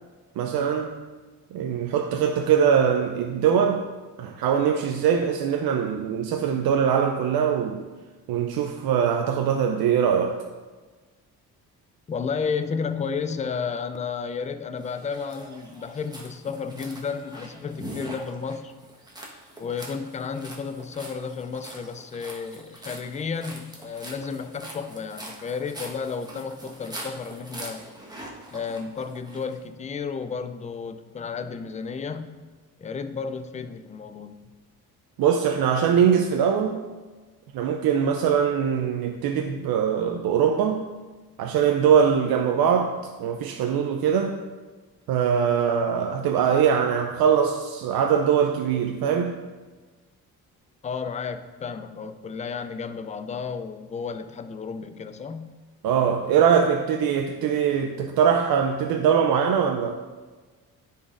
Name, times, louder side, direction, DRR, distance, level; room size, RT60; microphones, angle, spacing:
voice 1, 0.4-0.9 1.5-3.8 4.2-7.8 8.3-10.4 35.2-36.8 37.5-40.9 41.4-44.3 45.1-49.3 55.8-60.0, right 7 dB, 70° right, 3 dB, 0.6 m, -22 dB
voice 2, 12.1-18.7 19.6-27.8 28.5-32.4 32.8-34.5 50.8-55.6, left 5 dB, 20° left, 10 dB, 0.4 m, -32 dB
sound 1, 14.8-29.6, right 1 dB, 10° right, 1.2 m, -43 dB
9.8 x 4.1 x 2.5 m, 1.3 s
supercardioid pair, 75°, 38 cm